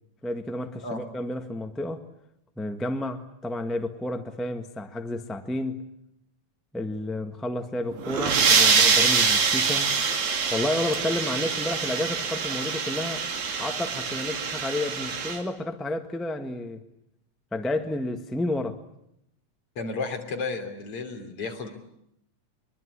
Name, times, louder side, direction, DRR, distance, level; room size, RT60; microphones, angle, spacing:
voice 1, 0.2-2.0 2.6-5.9 6.7-9.9 10.5-13.3 13.6-16.8 17.5-18.8, left 1 dB, ahead, 0.3 m, -31 dB
sound 1, 7.9-15.4, right 5 dB, 70° right, 4.0 m, -24 dB
voice 2, 19.8-21.7, left 3 dB, 45° left, 4.1 m, -32 dB
24.0 x 23.0 x 9.8 m
omnidirectional pair, 3.5 m